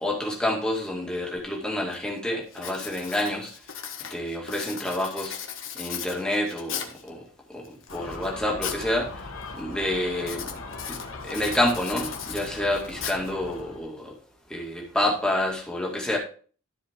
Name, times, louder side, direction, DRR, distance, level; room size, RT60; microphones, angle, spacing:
voice 1, 0.0-3.5 4.1-5.3 5.7-9.2 9.5-10.5 10.9-11.0 11.2-14.1 14.5-16.2, left 1 dB, 5° left, -2 dB, 2.1 m, -28 dB
Writing, 1.4-1.5 1.9-2.2 2.5-7.1 7.6-8.9 9.2-9.6 10.2-13.6, left 8 dB, 65° left, 1.3 m, -37 dB
Gull seagull, 7.9-13.8, left 3 dB, 80° left, 1.6 m, -40 dB
13.5 x 4.9 x 3.6 m, 0.41 s
head